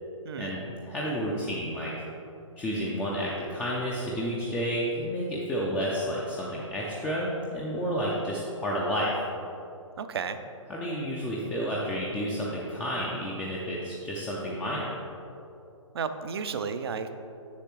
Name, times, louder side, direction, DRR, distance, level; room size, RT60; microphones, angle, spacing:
voice 1, 0.4-1.9 2.6-9.1 10.7-14.9, equal, 10° left, -5 dB, 0.4 m, -31 dB
voice 2, 10.0-10.4 15.9-17.1, right 6 dB, 50° right, 10 dB, 0.4 m, -32 dB
7.0 x 7.0 x 3.0 m, 2.8 s
figure-of-eight pair, 130°, 17 cm